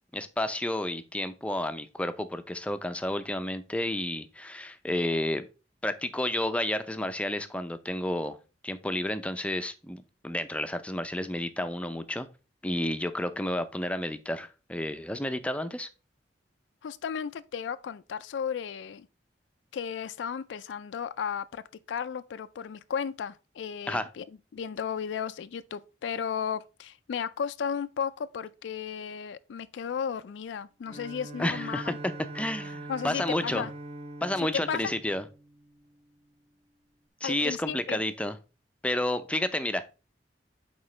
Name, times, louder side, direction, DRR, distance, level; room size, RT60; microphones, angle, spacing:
voice 1, 0.1-5.4 5.8-8.4 8.6-12.3 12.6-15.9 23.9-24.1 31.4-31.9 32.3-33.7 34.2-35.2 37.2-38.3 38.8-39.8, left 1 dB, 5° left, 0.5 m, -31 dB
voice 2, 16.8-19.1 19.7-21.6 21.9-24.3 24.5-32.0 32.9-33.7 34.4-34.9 37.2-38.0, left 7 dB, 85° left, 0.4 m, -34 dB
Bowed string instrument, 30.9-35.9, right 2 dB, 35° right, 0.6 m, -42 dB
8.9 x 3.7 x 3.2 m
head